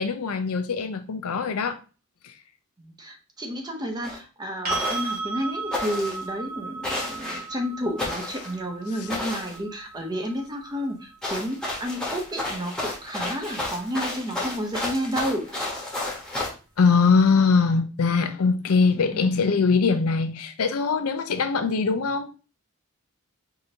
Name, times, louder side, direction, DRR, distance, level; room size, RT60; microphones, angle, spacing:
voice 1, 0.0-1.8 2.2-2.3 16.8-22.3, left 4 dB, 80° left, 0.5 m, -22 dB
voice 2, 2.8-15.8 19.0-19.4, equal, 20° right, 0.7 m, -31 dB
sound 1, 4.0-4.2 4.7-5.2 5.7-6.2 6.8-7.4 8.0-8.6 9.1-9.6 11.2-16.5, left 2 dB, 5° left, 1.1 m, -31 dB
sound 2, 4.6-12.5 15.3-15.4, right 4 dB, 45° right, 1.7 m, -35 dB
4.8 x 2.6 x 2.8 m
head